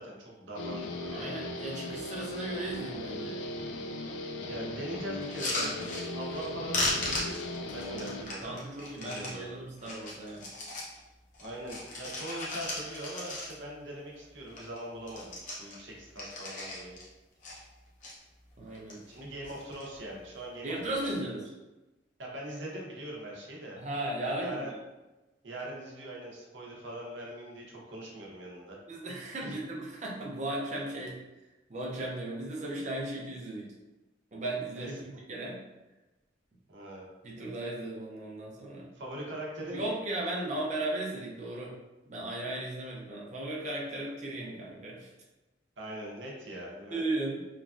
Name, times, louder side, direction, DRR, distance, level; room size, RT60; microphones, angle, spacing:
voice 1, 0.0-1.4 4.5-8.5 9.0-9.5 11.4-17.0 19.1-21.0 22.2-23.8 24.4-24.7 25.4-28.8 29.4-29.6 34.8-34.9 36.7-37.1 38.9-40.0 45.8-47.0, right 1 dB, 80° right, -3 dB, 0.8 m, -41 dB
Guitar, 0.6-8.2, left 2 dB, 80° left, 0.3 m, -38 dB
voice 2, 1.1-3.4 8.4-10.5 18.6-19.0 20.6-21.4 23.8-24.6 28.9-31.2 31.7-33.7 34.3-34.9 35.3-35.6 37.2-38.9 39.7-41.7 42.0-45.1 46.9-47.5, right 1 dB, 40° right, -2 dB, 0.6 m, -36 dB
sound 1, 5.2-6.5 6.7-9.4 9.8-11.0 11.3-13.8 14.2-14.3 14.5-14.8 15.0-17.1 17.4-18.1 18.7-19.2 19.4-20.0 20.8-21.1, left 2 dB, 45° left, 0.7 m, -36 dB
3.1 x 2.3 x 2.4 m, 1.1 s
head